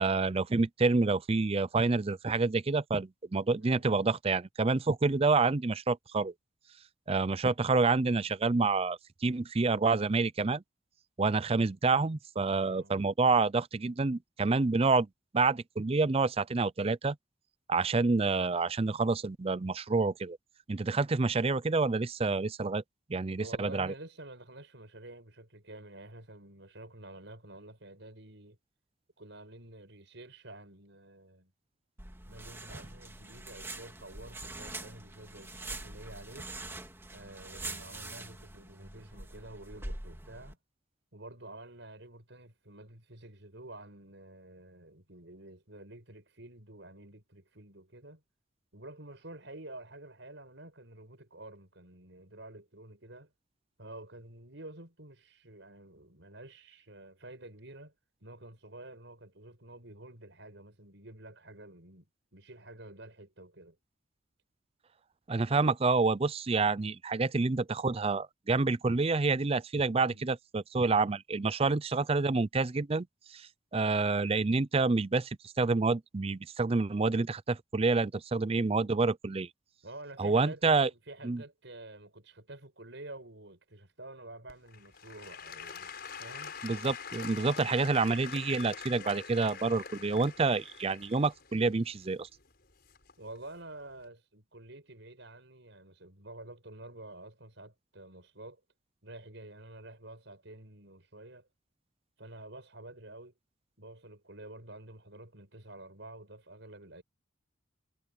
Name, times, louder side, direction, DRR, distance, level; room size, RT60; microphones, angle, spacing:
voice 1, 0.0-6.3 7.1-10.6 11.2-15.1 15.3-17.2 17.7-20.4 20.7-22.8 23.1-23.9 65.3-79.5 80.2-80.9 81.2-81.4 86.6-92.3, right 3 dB, 30° right, 0.5 m, -28 dB
voice 2, 3.6-3.9 12.5-13.0 23.4-28.6 29.2-31.5 32.3-36.5 37.1-40.6 41.1-48.2 48.7-53.3 53.8-57.9 58.2-62.1 62.3-63.8 69.8-70.3 79.8-85.9 86.2-86.6 89.9-90.3 93.2-98.6 99.0-101.5 102.2-103.3 103.8-107.0, right 2 dB, 65° right, 6.4 m, -49 dB
sound 1, 32.0-40.5, right 2 dB, 10° right, 2.4 m, -44 dB
Applause / Crowd, 84.5-93.4 94.0-94.1, left 6 dB, 55° left, 6.1 m, -45 dB
head